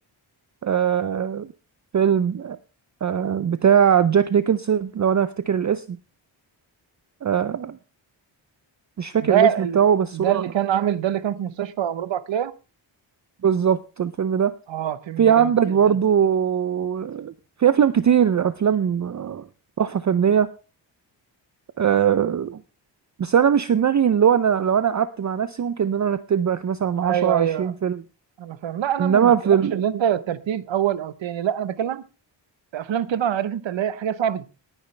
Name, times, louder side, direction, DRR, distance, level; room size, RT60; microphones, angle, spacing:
voice 1, 0.6-1.5 1.9-2.6 3.0-6.0 7.2-7.8 9.0-10.4 13.4-14.5 15.2-17.3 17.6-19.5 19.8-20.5 21.8-22.6 23.2-28.0 29.0-29.8, right 8 dB, 40° right, 14 dB, 0.5 m, -20 dB
voice 2, 9.2-9.8 10.1-12.5 14.7-15.7 27.0-27.7 28.4-32.0 32.7-34.5, right 9 dB, 65° right, 15 dB, 1.0 m, -25 dB
18.5 x 10.0 x 3.3 m, 0.33 s
wide cardioid pair, 170°, 48 cm